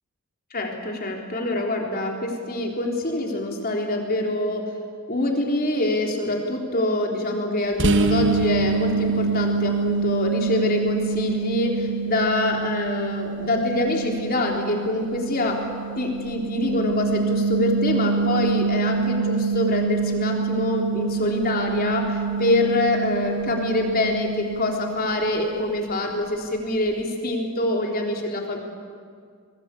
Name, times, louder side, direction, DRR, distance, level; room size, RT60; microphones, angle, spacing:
voice 1, 0.5-4.8 5.1-15.7 16.0-28.6, left 1 dB, 40° left, 1 dB, 3.8 m, -25 dB
sound 1, 7.8-25.3, right 4 dB, 55° right, 1.7 m, -26 dB
23.5 x 22.0 x 8.5 m, 2.1 s
head